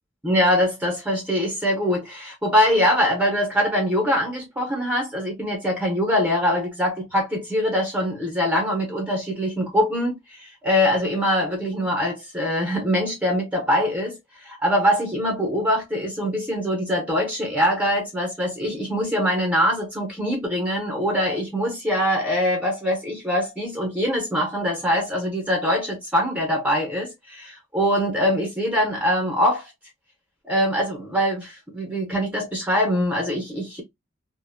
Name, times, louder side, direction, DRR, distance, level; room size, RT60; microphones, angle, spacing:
voice 1, 0.2-29.7 30.4-33.8, equal, 10° right, 0.7 m, -23 dB
2.5 x 2.0 x 2.5 m
head